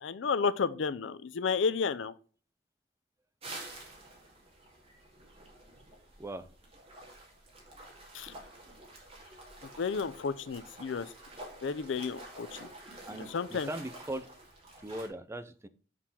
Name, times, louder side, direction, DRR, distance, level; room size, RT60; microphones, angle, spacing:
voice 1, 0.0-2.1 8.1-8.3 9.8-11.1 11.6-12.7 13.3-13.7, left 5 dB, 90° left, 0.5 m, -32 dB
sound 1, 3.4-15.1, right 2 dB, 35° right, 2.1 m, -49 dB
voice 2, 6.2-6.5 13.1-14.3 14.8-15.7, right 1 dB, 15° right, 0.5 m, -39 dB
6.4 x 3.8 x 5.7 m
head